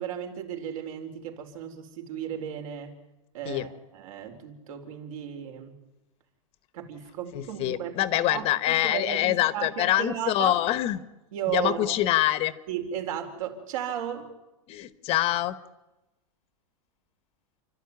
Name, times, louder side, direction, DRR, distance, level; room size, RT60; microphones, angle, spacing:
voice 1, 0.0-2.9 3.3-5.8 6.7-8.0 8.3-10.5 11.3-12.0 12.7-14.3, right 9 dB, 65° right, 5 dB, 4.4 m, -34 dB
voice 2, 7.3-11.0 11.5-12.5 14.7-15.6, left 14 dB, 30° left, 14 dB, 1.1 m, -25 dB
29.5 x 12.5 x 9.5 m, 1.0 s
supercardioid pair, 150°, 19 cm